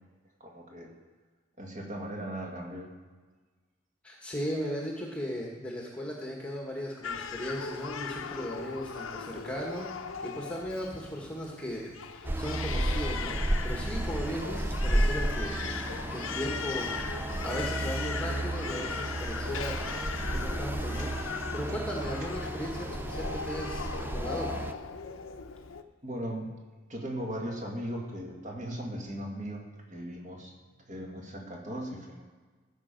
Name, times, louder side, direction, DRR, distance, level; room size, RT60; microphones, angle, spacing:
voice 1, 0.4-0.9 1.6-2.9 26.0-26.5 26.9-30.5 30.9-32.2, right 1 dB, 35° right, 0 dB, 1.8 m, -38 dB
voice 2, 4.0-16.9 17.4-19.8 20.0-21.1 21.5-24.5, equal, 5° left, -2 dB, 1.4 m, -37 dB
Crying sobbing, 7.0-25.8, left 5 dB, 85° left, 0.7 m, -39 dB
sound 1, 12.2-24.7, right 1 dB, 10° right, 0.3 m, -33 dB
15.0 x 7.0 x 5.2 m, 1.4 s
head